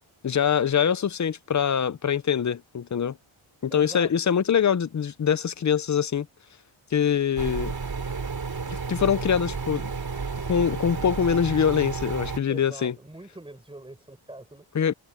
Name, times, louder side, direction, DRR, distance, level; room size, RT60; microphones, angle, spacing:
voice 1, 0.2-3.2 3.6-6.3 6.9-7.7 8.7-9.9 10.5-12.9 14.7-14.9, left 8 dB, 35° left, 0.5 m, -24 dB
voice 2, 3.7-4.1 12.5-14.6, right 1 dB, 10° right, 5.0 m, -42 dB
sound 1, 7.4-12.4, right 5 dB, 45° right, 3.6 m, -31 dB
wide cardioid pair, 150°, 50 cm